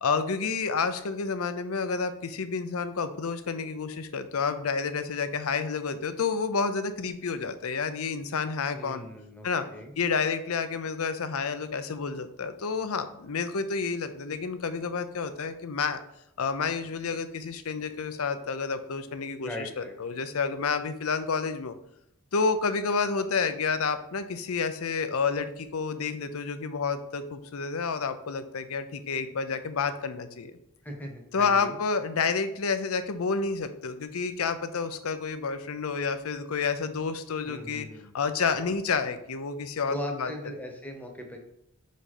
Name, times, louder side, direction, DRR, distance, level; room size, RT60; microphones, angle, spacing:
voice 1, 0.0-9.1 9.4-9.7 10.0-16.0 16.4-21.7 22.3-30.6 31.3-37.9 38.1-40.3, left 5 dB, 80° left, 10 dB, 0.6 m, -29 dB
voice 2, 8.7-9.9 19.4-19.9 30.8-31.8 37.5-38.1 39.9-41.4, left 1 dB, 5° left, 2 dB, 1.0 m, -39 dB
5.1 x 5.0 x 4.3 m, 0.76 s
head